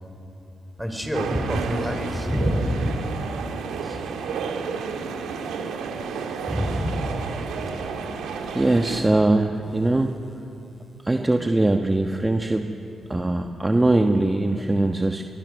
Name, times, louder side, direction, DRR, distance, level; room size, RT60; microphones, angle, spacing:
voice 1, 0.8-3.0 3.8-4.0 6.5-7.3, equal, ahead, 4 dB, 4.7 m, -26 dB
sound 1, 1.1-9.0, right 5 dB, 85° right, 2.3 m, -31 dB
voice 2, 8.5-10.1 11.0-12.7 13.1-15.2, right 2 dB, 20° right, 4 dB, 1.3 m, -21 dB
25.5 x 22.0 x 6.6 m, 2.9 s
supercardioid pair, 60°, 0 cm